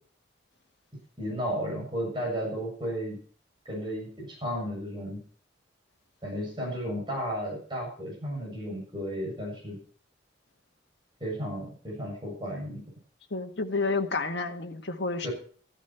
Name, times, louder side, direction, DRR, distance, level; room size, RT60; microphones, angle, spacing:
voice 1, 1.2-3.2 3.7-5.2 6.2-9.8 11.2-12.8 15.2-15.3, equal, 25° right, -2 dB, 7.5 m, -33 dB
voice 2, 13.3-15.3, left 3 dB, 60° left, 5 dB, 1.7 m, -30 dB
15.5 x 11.5 x 4.5 m, 0.44 s
head